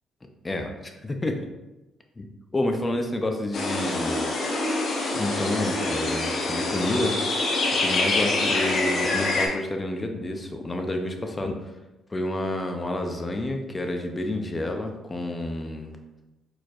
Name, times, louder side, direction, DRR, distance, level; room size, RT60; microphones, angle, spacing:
voice 1, 0.4-1.4 2.2-2.3 2.5-4.3 5.1-7.2 7.8-11.6 12.1-16.0, left 1 dB, 25° left, 4 dB, 0.6 m, -29 dB
sound 1, 3.5-9.5, left 2 dB, 60° left, 1.0 m, -25 dB
4.5 x 4.3 x 2.5 m, 1.0 s
cardioid pair, 90°, 0 cm